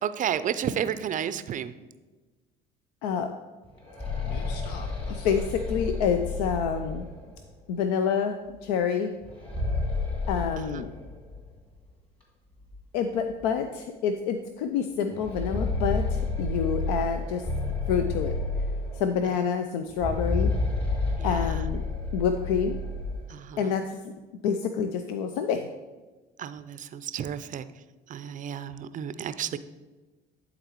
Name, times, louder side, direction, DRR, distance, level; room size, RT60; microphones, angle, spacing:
voice 1, 0.0-1.7 10.6-10.9 21.2-21.6 23.3-23.7 26.4-27.7 28.1-29.6, right 9 dB, 40° right, 13 dB, 0.4 m, -32 dB
voice 2, 3.0-3.3 4.2-7.1 7.7-9.1 10.3-10.9 12.9-17.5 17.9-18.3 18.9-20.5 21.2-21.8 22.1-22.8 23.6-24.1 24.4-25.7, left 7 dB, 80° left, 7 dB, 0.4 m, -28 dB
sound 1, 3.6-7.4 9.2-11.4 11.7-11.8 12.7-12.8 13.3-13.4 15.1-19.2 19.9-23.3, left 3 dB, 25° left, 2.2 m, -30 dB
11.0 x 3.9 x 3.0 m, 1.2 s
hypercardioid pair, 65°, 21 cm